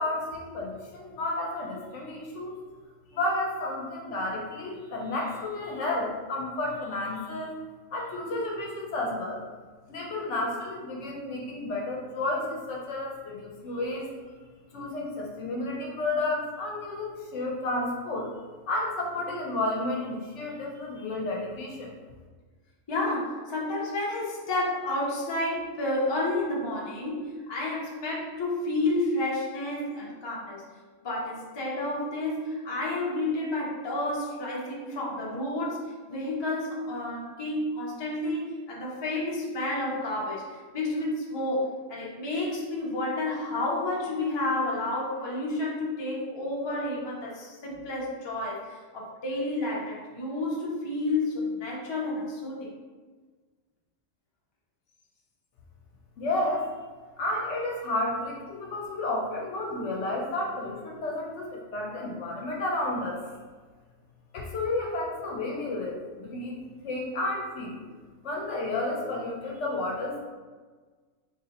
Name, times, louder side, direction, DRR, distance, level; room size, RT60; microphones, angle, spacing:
voice 1, 0.0-2.6 3.1-7.5 7.9-9.4 9.9-14.1 14.7-18.3 18.7-21.9 56.2-56.7 57.2-63.2 64.3-66.6 66.8-67.8 68.2-70.2, left 2 dB, 65° left, -1 dB, 0.9 m, -31 dB
voice 2, 22.9-30.6 31.0-52.7, left 2 dB, 30° left, -4 dB, 0.5 m, -30 dB
3.9 x 3.0 x 2.8 m, 1.4 s
omnidirectional pair, 1.4 m